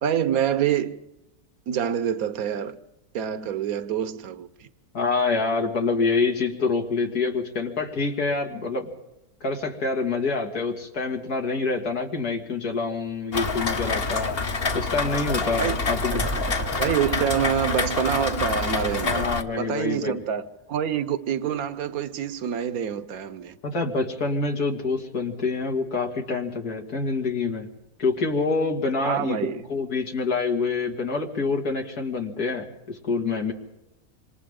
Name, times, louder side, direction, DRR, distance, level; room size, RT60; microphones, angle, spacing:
voice 1, 0.0-1.0 1.7-2.8 3.1-4.7 15.6-15.8 16.8-23.6 29.0-29.7, right 9 dB, 70° right, 1.4 m, -26 dB
voice 2, 4.9-8.9 9.4-14.3 14.7-16.3 19.0-20.2 23.6-27.7 28.0-33.5, left 4 dB, 85° left, 3.0 m, -26 dB
Rain, 13.3-19.4, left 3 dB, 45° left, 1.3 m, -27 dB
sound 1, 16.1-19.3 19.7-19.8 20.0-20.1, right 3 dB, 10° right, 0.8 m, -36 dB
27.0 x 26.5 x 3.8 m
omnidirectional pair, 1.6 m